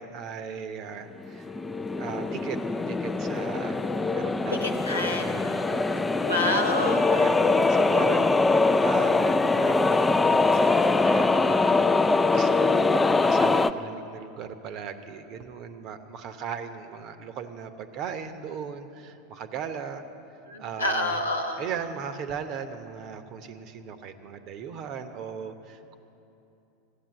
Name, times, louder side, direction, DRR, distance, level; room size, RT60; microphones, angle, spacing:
voice 1, 0.0-1.5 2.0-2.6 2.9-3.8 4.1-6.1 6.7-20.0 20.6-21.2 21.6-26.0, right 7 dB, 45° right, 9 dB, 0.9 m, -38 dB
sound 1, 1.2-13.7, left 3 dB, 10° left, 0.4 m, -23 dB
voice 2, 4.5-5.3 6.2-7.0 20.5-21.6, left 2 dB, 90° left, 3 dB, 1.2 m, -28 dB
13.5 x 8.9 x 9.0 m, 2.9 s
figure-of-eight pair, 85°, 0 cm